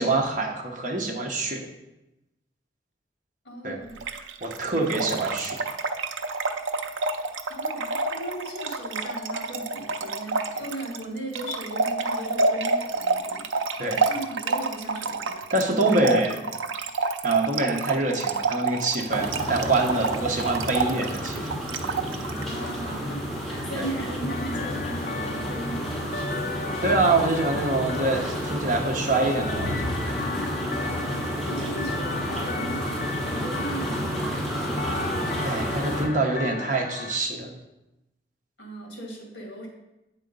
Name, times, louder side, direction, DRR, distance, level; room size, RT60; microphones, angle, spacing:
voice 1, 0.0-1.6 3.6-3.8 4.4-5.6 13.8-14.0 15.5-16.4 17.2-21.5 23.8-23.9 26.8-30.5 35.4-37.5, right 2 dB, 45° right, 2 dB, 0.9 m, -25 dB
voice 2, 3.4-4.0 7.5-13.5 14.0-15.4 22.3-26.9 30.7-31.1 31.4-35.0 38.6-39.7, right 1 dB, 60° left, -1 dB, 2.1 m, -37 dB
Trickle dribble / Fill (with liquid), 4.0-22.4, right 4 dB, 90° right, 0.5 m, -28 dB
sound 1, 19.1-36.0, equal, ahead, 2.6 m, -31 dB
sound 2, 24.3-37.2, left 4 dB, 45° left, 0.4 m, -35 dB
8.3 x 3.8 x 5.3 m, 0.95 s
head